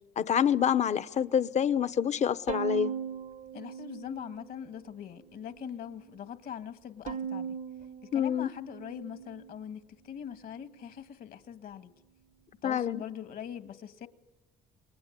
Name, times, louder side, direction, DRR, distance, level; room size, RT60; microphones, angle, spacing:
voice 1, 0.2-2.9 8.1-8.5 12.6-13.0, left 8 dB, 45° left, 0.9 m, -27 dB
Bowed string instrument, 2.5-4.9 5.3-6.1 7.1-9.6, right 7 dB, 50° right, 1.0 m, -39 dB
voice 2, 3.5-7.6 8.0-11.9 12.6-14.1, left 8 dB, 60° left, 1.9 m, -42 dB
28.0 x 21.5 x 9.8 m
cardioid pair, 110°, 17 cm